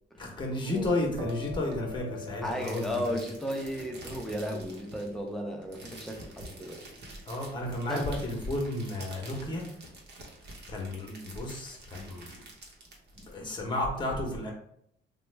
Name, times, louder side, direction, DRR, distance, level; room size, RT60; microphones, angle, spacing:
voice 1, 0.2-3.2 7.3-9.7 10.7-12.4 13.1-14.5, left 1 dB, 25° left, 0 dB, 0.9 m, -32 dB
sound 1, 1.2-8.6, left 2 dB, 85° right, 0.6 m, -46 dB
sound 2, 1.3-13.9, right 1 dB, 55° right, 0.9 m, -48 dB
voice 2, 2.4-6.8 7.9-8.0, equal, ahead, 1 dB, 0.6 m, -34 dB
3.0 x 2.2 x 3.2 m, 0.70 s
cardioid pair, 90°, 20 cm